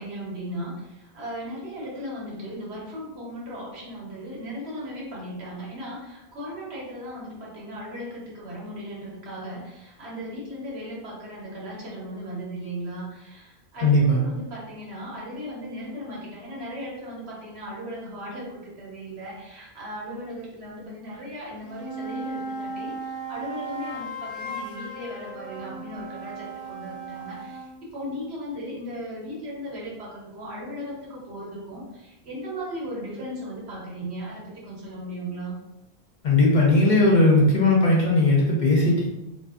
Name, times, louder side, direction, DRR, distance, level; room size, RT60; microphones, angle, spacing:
voice 1, 0.0-35.5 38.9-39.1, equal, 80° right, -5 dB, 1.2 m, -37 dB
voice 2, 13.8-14.2 36.2-39.1, left 2 dB, 50° left, -3 dB, 0.7 m, -18 dB
sound 1, 21.6-27.8, right 2 dB, 50° right, 0.4 m, -36 dB
2.5 x 2.4 x 2.3 m, 0.95 s
omnidirectional pair, 1.1 m